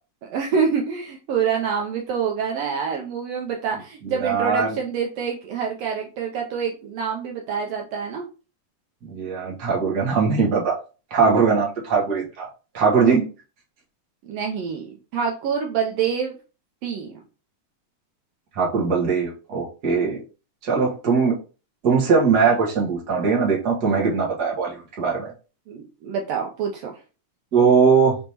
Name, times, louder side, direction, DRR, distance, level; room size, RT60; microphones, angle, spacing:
voice 1, 0.2-8.3 14.2-16.4 16.8-17.2 25.7-27.0, right 6 dB, 85° right, 1 dB, 1.4 m, -26 dB
voice 2, 4.0-4.8 9.0-10.7 11.1-12.5 12.7-13.2 18.5-20.2 20.6-21.4 21.8-25.3 27.5-28.2, right 5 dB, 45° right, -2 dB, 1.3 m, -20 dB
5.0 x 3.6 x 2.9 m, 0.34 s
omnidirectional pair, 3.6 m